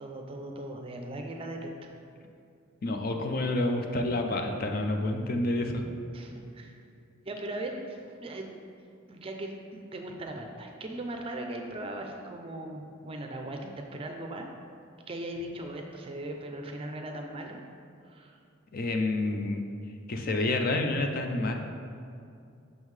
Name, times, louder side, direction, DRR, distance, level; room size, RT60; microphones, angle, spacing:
voice 1, 0.0-1.9 6.1-6.7 7.2-8.5 9.1-14.5 15.1-17.6 18.1-18.4, right 1 dB, 25° right, 3 dB, 0.5 m, -39 dB
voice 2, 2.8-5.8 18.7-19.6 20.1-21.5, left 2 dB, 45° left, 4 dB, 0.5 m, -28 dB
6.3 x 5.4 x 3.2 m, 2.5 s
head